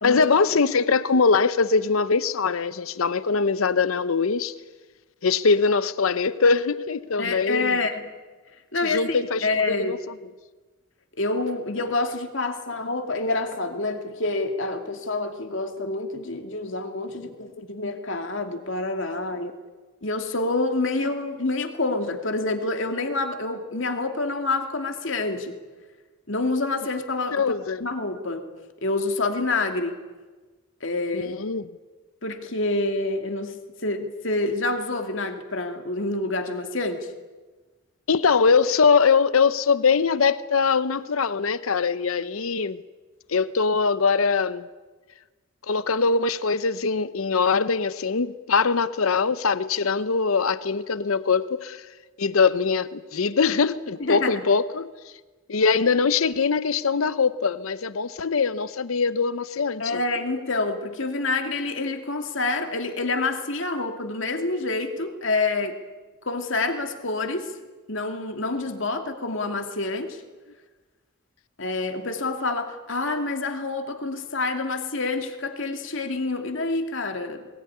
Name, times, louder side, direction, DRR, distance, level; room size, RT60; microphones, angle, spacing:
voice 1, 0.0-4.5 5.2-7.8 8.8-9.5 9.8-10.0 27.3-27.8 31.1-31.7 38.1-42.8 43.3-44.6 45.7-51.9 52.2-54.9 55.5-60.0, left 5 dB, 80° left, 0.7 m, -22 dB
voice 2, 7.2-8.1 8.7-10.0 11.2-19.5 20.0-25.6 26.3-28.5 28.8-30.0 30.8-31.3 32.2-37.1 54.0-54.4 59.8-65.8 66.2-67.5 67.9-70.2 71.6-77.5, left 2 dB, 60° left, 2.6 m, -27 dB
21.0 x 20.5 x 9.8 m
head